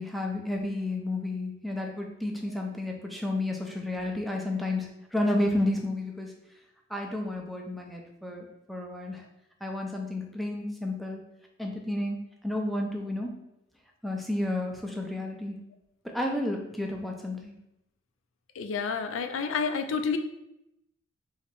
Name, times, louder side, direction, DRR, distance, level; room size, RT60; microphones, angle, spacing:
voice 1, 0.0-6.3 6.9-9.2 9.6-11.2 11.6-12.2 12.4-13.3 14.0-15.6 16.1-17.6, left 1 dB, ahead, 1 dB, 0.5 m, -31 dB
voice 2, 18.6-20.2, left 5 dB, 70° left, 7 dB, 0.4 m, -29 dB
3.1 x 2.8 x 4.4 m, 0.85 s
head